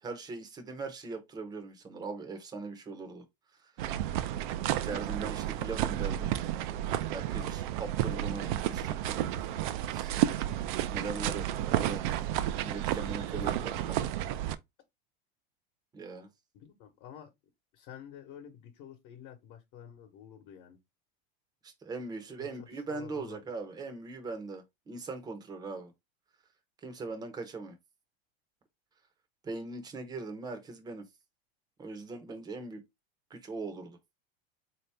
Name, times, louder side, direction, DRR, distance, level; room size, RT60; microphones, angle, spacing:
voice 1, 0.0-3.2 3.6-3.7 4.8-6.3 7.1-9.4 9.9-10.1 10.9-12.0 12.6-14.1 15.9-16.3 21.6-25.9 26.8-27.8 29.4-31.0 31.8-32.8 33.3-34.0, right 3 dB, 15° right, 0.7 m, -40 dB
sound 1, 3.8-14.6, right 12 dB, 55° right, 0.5 m, -32 dB
voice 2, 16.5-17.3 17.7-20.8 22.4-23.4, left 9 dB, 50° left, 1.1 m, -50 dB
3.9 x 2.8 x 3.4 m
supercardioid pair, 155°, 29 cm